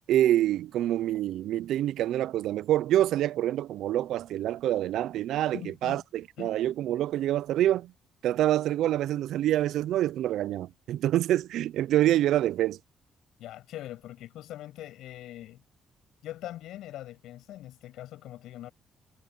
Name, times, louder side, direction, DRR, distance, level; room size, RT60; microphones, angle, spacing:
voice 1, 0.1-7.9 8.2-12.8, right 13 dB, 80° right, 0.4 m, -26 dB
voice 2, 5.5-6.0 6.4-6.6 13.4-15.6 16.2-18.7, left 13 dB, 85° left, 6.9 m, -42 dB
cardioid pair, 90°, 0 cm